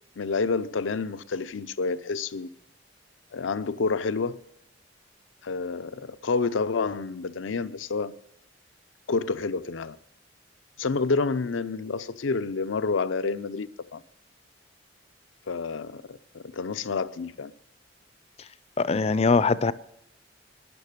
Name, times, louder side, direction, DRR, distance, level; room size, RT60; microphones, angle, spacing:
voice 1, 0.2-2.5 3.3-4.4 5.4-8.1 9.1-10.0 10.8-14.0 15.5-17.5, left 4 dB, 85° left, 0.6 m, -29 dB
voice 2, 18.8-19.7, left 4 dB, 35° left, 0.4 m, -22 dB
12.5 x 9.8 x 6.7 m
head